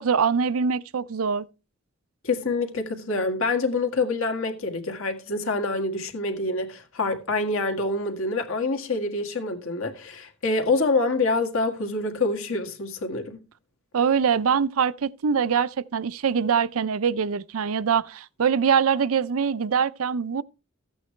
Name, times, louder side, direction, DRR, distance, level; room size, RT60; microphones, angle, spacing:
voice 1, 0.0-1.5 13.9-20.4, right 6 dB, 75° right, 0.5 m, -23 dB
voice 2, 2.2-13.4, left 3 dB, 70° left, 1.9 m, -26 dB
14.0 x 8.6 x 3.2 m
head